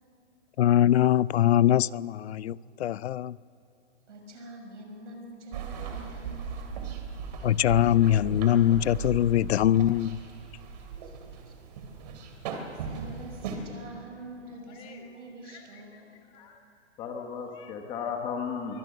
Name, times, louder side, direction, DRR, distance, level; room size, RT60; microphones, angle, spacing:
voice 1, 0.6-3.4 7.4-10.2, left 11 dB, 65° left, 0.5 m, -22 dB
voice 2, 4.1-6.8 10.9-11.5 12.5-16.1, right 2 dB, 85° right, 6.0 m, -46 dB
sound 1, 5.5-13.6, right 6 dB, 35° right, 2.7 m, -38 dB
voice 3, 14.7-15.0 15.5-16.0 16.3-16.6 17.0-18.8, left 6 dB, 15° left, 1.2 m, -36 dB
23.5 x 18.0 x 6.7 m
hypercardioid pair, 170°, 35 cm